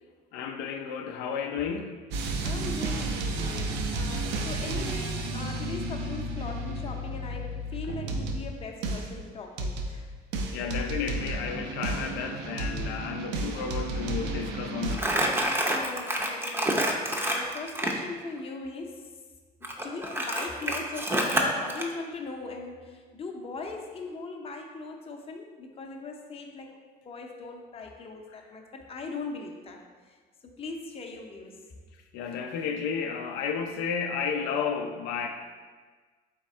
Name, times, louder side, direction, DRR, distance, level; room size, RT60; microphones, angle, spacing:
voice 1, 0.3-2.0 10.5-15.4 32.1-35.3, left 6 dB, 90° left, 4 dB, 0.4 m, -32 dB
sound 1, 2.1-8.5 8.8-9.2 9.6-10.0 10.3-15.0, right 2 dB, 85° right, 0.5 m, -32 dB
voice 2, 2.4-10.1 15.6-19.0 19.6-26.7 27.0-29.8 30.6-31.6, left 3 dB, 35° left, 2 dB, 0.6 m, -39 dB
Crumpling crinkling, 14.9-18.0 19.6-21.9, right 1 dB, 15° right, 0.5 m, -27 dB
3.6 x 3.3 x 4.2 m, 1.4 s
cardioid pair, 110°, 17 cm